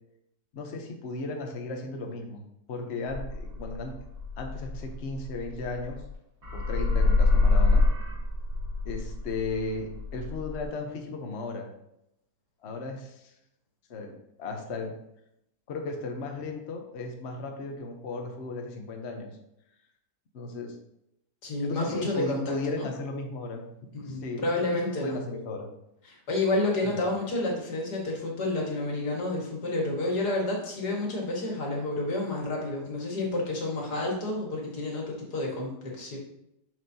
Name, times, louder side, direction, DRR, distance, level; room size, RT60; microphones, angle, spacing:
voice 1, 0.5-2.4 2.7-3.9 4.4-6.0 6.5-7.8 8.8-11.7 12.6-13.3 13.9-15.0 15.7-19.4 20.3-20.8 21.6-23.6 24.1-25.7 26.8-27.1, left 3 dB, 50° left, 3 dB, 1.0 m, -35 dB
sound 1, 3.1-6.1 6.4-10.6, left 2 dB, 75° right, 3.2 m, -26 dB
voice 2, 21.4-22.9 23.9-25.2 26.1-36.2, left 2 dB, 85° left, -2 dB, 2.3 m, -30 dB
7.6 x 6.2 x 2.8 m, 0.81 s
omnidirectional pair, 1.7 m